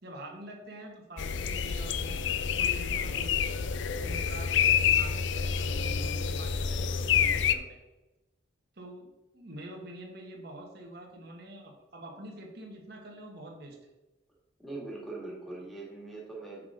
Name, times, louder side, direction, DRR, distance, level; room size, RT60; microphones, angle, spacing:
voice 1, 0.0-2.2 2.5-3.4 4.0-7.8 8.7-13.8, right 1 dB, 55° right, 0 dB, 1.4 m, -46 dB
sound 1, 1.2-7.5, left 7 dB, 70° left, 0.4 m, -28 dB
voice 2, 14.6-16.6, right 2 dB, ahead, -4 dB, 2.0 m, -41 dB
6.2 x 5.8 x 5.0 m, 1.1 s
head